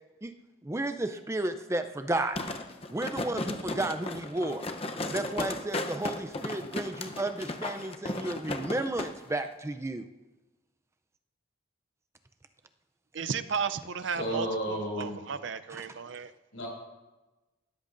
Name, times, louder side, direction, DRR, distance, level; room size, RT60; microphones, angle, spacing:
voice 1, 0.6-2.4 2.9-4.6 5.1-10.1 15.7-15.8, right 2 dB, 15° right, 8 dB, 0.4 m, -32 dB
sound 1, 2.4-9.1 9.4-9.5, left 2 dB, 30° left, 0.7 m, -35 dB
voice 2, 13.1-16.3, right 6 dB, 65° right, 12 dB, 0.5 m, -34 dB
voice 3, 14.1-15.2 16.5-16.7, equal, 85° left, -1 dB, 5.5 m, -32 dB
18.5 x 13.5 x 2.6 m, 1.1 s
head